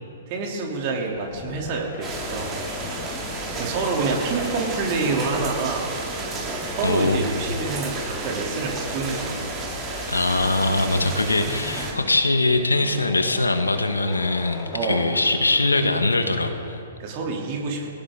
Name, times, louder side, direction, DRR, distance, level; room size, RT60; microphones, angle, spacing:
voice 1, 0.3-2.6 3.6-5.9 6.7-9.8 14.7-15.2 17.0-17.9, right 4 dB, 40° right, 0 dB, 2.9 m, -27 dB
sound 1, 0.9-17.0, left 9 dB, 35° left, 0.9 m, -40 dB
sound 2, 2.0-11.9, right 3 dB, 25° right, 2.6 m, -32 dB
voice 2, 6.8-7.3 10.1-16.8, left 2 dB, 80° left, 7 dB, 1.3 m, -22 dB
21.0 x 17.5 x 3.7 m, 2.5 s
figure-of-eight pair, 115°, 0 cm